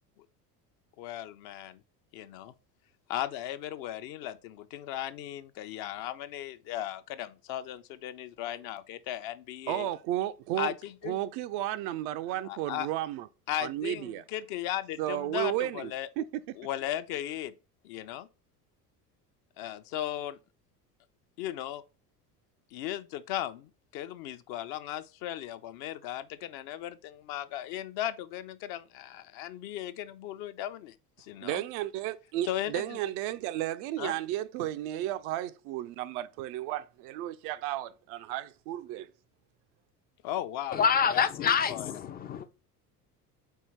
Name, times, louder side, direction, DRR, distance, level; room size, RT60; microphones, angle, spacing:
voice 1, 1.0-1.8 2.1-2.5 3.1-9.9 10.6-11.1 12.4-12.9 13.5-16.1 16.6-17.5 17.8-18.3 19.6-20.4 21.4-21.8 22.7-31.6 32.5-33.0 34.0-34.2 40.2-40.8 41.1-41.9, left 12 dB, 50° left, 0.7 m, -37 dB
voice 2, 9.7-10.7 11.0-13.3 13.6-14.2 15.0-16.4 31.4-39.1, right 13 dB, 40° right, 0.4 m, -33 dB
voice 3, 40.7-42.5, left 7 dB, 20° left, 0.4 m, -26 dB
4.6 x 4.4 x 5.6 m
figure-of-eight pair, 65°, 49 cm